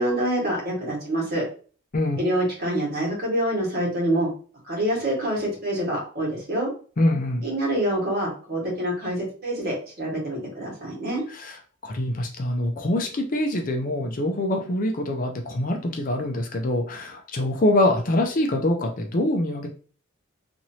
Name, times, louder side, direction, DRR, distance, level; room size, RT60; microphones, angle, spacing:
voice 1, 0.0-1.4 2.2-4.3 4.6-6.7 7.4-11.2, right 1 dB, 50° right, -3 dB, 1.5 m, -26 dB
voice 2, 7.0-7.4 11.3-11.6 11.8-19.7, left 1 dB, 40° left, 3 dB, 0.5 m, -24 dB
3.0 x 2.5 x 2.7 m, 0.40 s
head